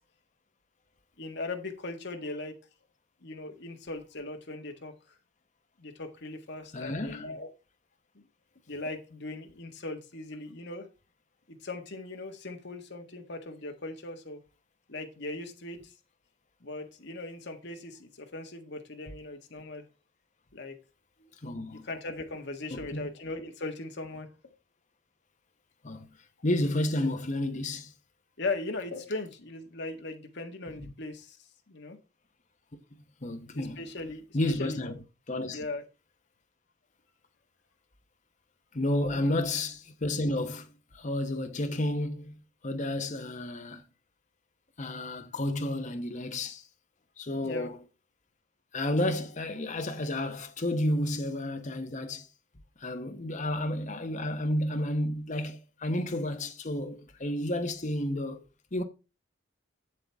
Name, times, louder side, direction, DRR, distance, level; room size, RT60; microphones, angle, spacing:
voice 1, 1.2-2.6 3.2-4.9 5.8-7.5 8.7-10.9 11.5-14.4 14.9-15.9 16.6-19.8 20.5-20.8 21.2-21.3 21.7-24.3 28.4-31.4 31.7-32.0 33.5-34.8 35.5-35.8 39.1-39.4 47.4-47.7, left 2 dB, 55° left, 1.6 m, -39 dB
voice 2, 6.7-7.3 21.4-21.9 22.7-23.1 25.8-26.1 26.4-27.9 33.2-33.9 34.3-35.0 35.3-35.6 38.7-43.8 44.8-46.6 47.2-47.8 48.7-52.3 52.8-58.4 58.7-58.8, left 1 dB, 35° left, 1.0 m, -31 dB
7.9 x 7.6 x 3.5 m
head